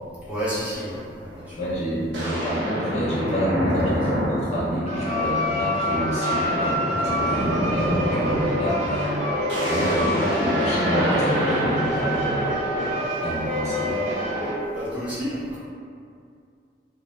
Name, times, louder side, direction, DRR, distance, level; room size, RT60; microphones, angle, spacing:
voice 1, 0.3-1.6 3.8-4.0 13.7-13.9 14.7-15.6, equal, 10° right, -10 dB, 0.6 m, -31 dB
sound 1, 1.3-1.4 2.1-5.0 5.5-5.7 6.0-13.2, equal, 85° right, 0.7 m, -27 dB
voice 2, 1.6-9.1 9.6-12.9 13.2-14.1, equal, 40° left, -8 dB, 0.7 m, -28 dB
sound 2, 4.9-14.5, equal, 40° right, 0.9 m, -26 dB
2.4 x 2.0 x 3.0 m, 2.3 s
head